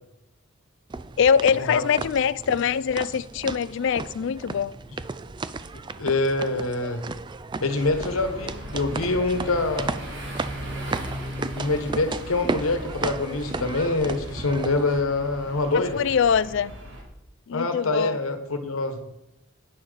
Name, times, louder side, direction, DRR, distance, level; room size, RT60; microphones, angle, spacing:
sound 1, 0.9-15.0, right 3 dB, 20° right, 0.3 m, -35 dB
voice 1, 1.2-4.7 15.9-16.7 17.5-18.2, left 7 dB, 60° left, 0.3 m, -23 dB
voice 2, 6.0-7.0 7.6-9.9 11.5-16.0 17.5-19.0, left 2 dB, 85° left, 1.2 m, -25 dB
sound 2, 7.7-17.0, equal, 60° right, 2.2 m, -38 dB
11.5 x 8.6 x 4.0 m
head